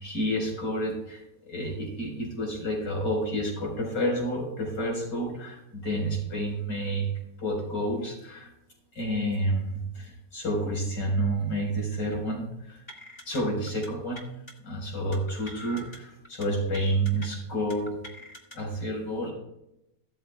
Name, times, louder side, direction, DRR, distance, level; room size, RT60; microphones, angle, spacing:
voice 1, 0.0-7.1 7.4-8.5 8.9-12.8 13.3-14.2 14.6-18.0 18.5-19.3, right 1 dB, 75° left, -2 dB, 5.1 m, -29 dB
sound 1, 12.9-13.4 13.7-13.9 14.2-14.5 15.1-16.0 16.2-16.5 16.7-17.3 17.7-18.6, left 1 dB, 25° left, 1.9 m, -44 dB
15.5 x 13.0 x 2.3 m, 0.83 s
omnidirectional pair, 1.8 m